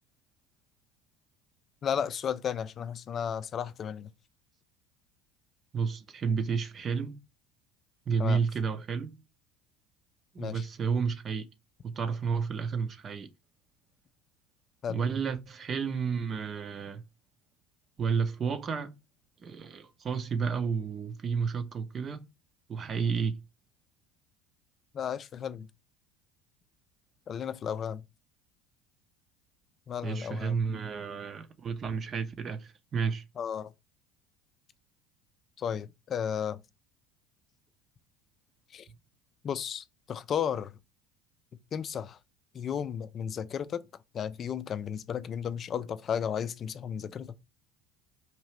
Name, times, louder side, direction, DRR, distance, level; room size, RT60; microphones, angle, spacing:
voice 1, 1.8-4.1 8.2-8.4 10.4-10.6 14.8-15.0 24.9-25.7 27.3-28.0 29.9-30.6 33.4-33.7 35.6-36.6 38.7-38.9 39.4-40.8 41.7-42.2 42.5-43.9 44.1-47.4, left 8 dB, 40° left, 0.4 m, -34 dB
voice 2, 5.7-7.2 8.1-9.2 10.3-11.5 11.8-13.3 14.9-17.0 18.0-18.9 19.4-22.3 22.7-23.3 30.0-33.2, right 5 dB, 35° right, 0.7 m, -31 dB
4.4 x 2.7 x 3.1 m
hypercardioid pair, 70°, 0 cm